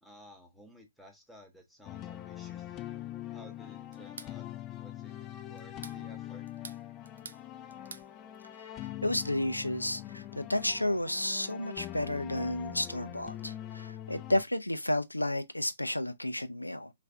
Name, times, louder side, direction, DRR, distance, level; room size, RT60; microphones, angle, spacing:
voice 1, 0.0-2.8 3.3-4.5 4.8-5.1 5.4-6.5 8.2-8.3, equal, ahead, 0.7 m, -55 dB
sound 1, 1.8-14.4, left 13 dB, 20° left, 0.3 m, -43 dB
sound 2, 3.9-4.4 5.6-6.0 6.5-7.4 7.7-8.1, right 5 dB, 65° right, 0.4 m, -47 dB
voice 2, 9.0-16.9, left 1 dB, 85° left, 0.4 m, -32 dB
3.2 x 2.5 x 3.1 m
figure-of-eight pair, 125°, 0 cm